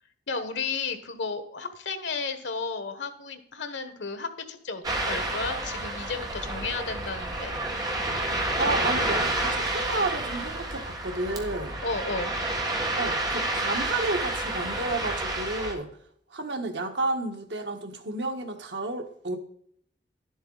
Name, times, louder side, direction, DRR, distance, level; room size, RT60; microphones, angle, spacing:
voice 1, 0.3-7.5 11.8-12.4, left 4 dB, 85° left, 10 dB, 1.2 m, -33 dB
Ocean, 4.8-15.7, right 2 dB, 20° right, 1.5 m, -29 dB
voice 2, 8.6-11.8 13.0-15.9 16.3-19.4, right 2 dB, 80° right, 5 dB, 1.4 m, -31 dB
11.0 x 7.9 x 3.9 m, 0.67 s
head